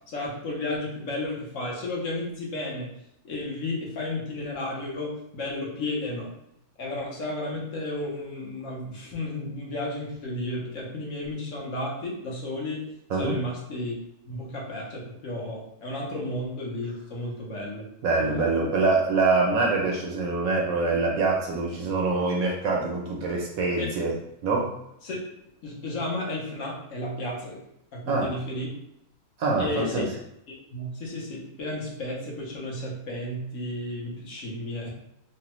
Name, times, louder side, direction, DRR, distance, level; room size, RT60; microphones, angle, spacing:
voice 1, 0.1-2.9 3.2-6.3 6.8-12.8 13.1-13.9 14.2-17.8 18.2-18.5 23.8-23.9 25.0-25.2 25.6-27.6 27.9-28.7 29.6-30.0 30.7-34.9, left 1 dB, 60° left, -3 dB, 1.1 m, -33 dB
voice 2, 18.0-24.1 24.4-24.7 28.1-28.3 29.4-30.0, right 3 dB, 70° right, -1 dB, 1.0 m, -24 dB
3.2 x 2.2 x 2.9 m, 0.81 s
omnidirectional pair, 1.6 m